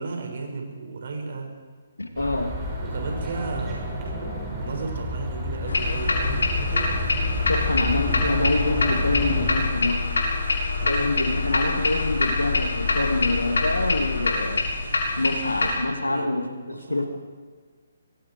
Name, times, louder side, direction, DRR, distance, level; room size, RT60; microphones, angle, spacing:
voice 1, 0.0-1.5 2.9-3.9 4.6-7.0 10.4-11.4 16.0-16.3 16.7-17.1, right 3 dB, 55° right, 2 dB, 6.4 m, -35 dB
voice 2, 2.0-2.6 7.5-10.1 10.8-14.6 15.2-17.1, left 2 dB, 90° left, 5 dB, 2.8 m, -26 dB
sound 1, 2.2-9.5, equal, 20° right, 6.8 m, -30 dB
sound 2, 5.7-15.8, left 3 dB, 70° left, 7.0 m, -25 dB
26.0 x 22.5 x 4.9 m, 1.5 s
figure-of-eight pair, 140°, 0 cm